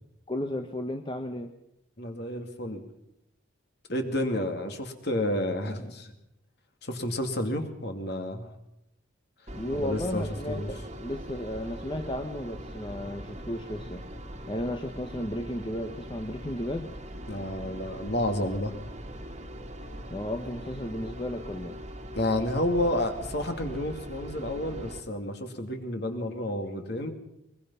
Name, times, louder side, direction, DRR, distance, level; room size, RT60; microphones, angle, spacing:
voice 1, 0.3-1.5 9.5-14.0 14.5-16.9 20.1-21.8, left 1 dB, 25° left, 5 dB, 1.1 m, -34 dB
voice 2, 2.0-2.9 3.9-6.1 6.8-8.5 9.7-10.7 17.3-18.7 22.1-27.1, left 1 dB, 50° left, 5 dB, 2.6 m, -30 dB
sound 1, 9.5-25.0, equal, 30° right, 1.9 m, -41 dB
22.5 x 22.0 x 5.7 m, 0.83 s
head